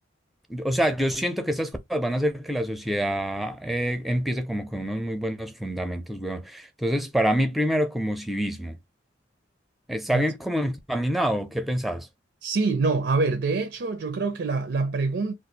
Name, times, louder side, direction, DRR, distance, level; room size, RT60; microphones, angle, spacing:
voice 1, 0.5-8.8 9.9-12.1, equal, ahead, 0.5 m, -26 dB
voice 2, 12.4-15.3, right 3 dB, 60° right, 0.4 m, -25 dB
2.5 x 2.3 x 4.0 m
head